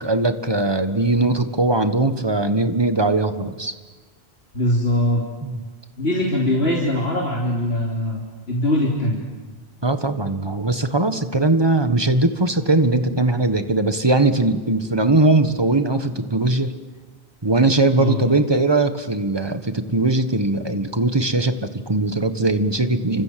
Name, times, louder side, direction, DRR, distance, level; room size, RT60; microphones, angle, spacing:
voice 1, 0.0-3.7 5.4-5.6 9.8-16.7 17.4-23.2, right 2 dB, 25° right, 9 dB, 1.5 m, -20 dB
voice 2, 4.5-5.2 6.0-8.2 8.5-9.2 18.0-18.2, left 1 dB, 75° left, -2 dB, 3.5 m, -21 dB
29.5 x 26.0 x 7.7 m, 1.3 s
omnidirectional pair, 1.1 m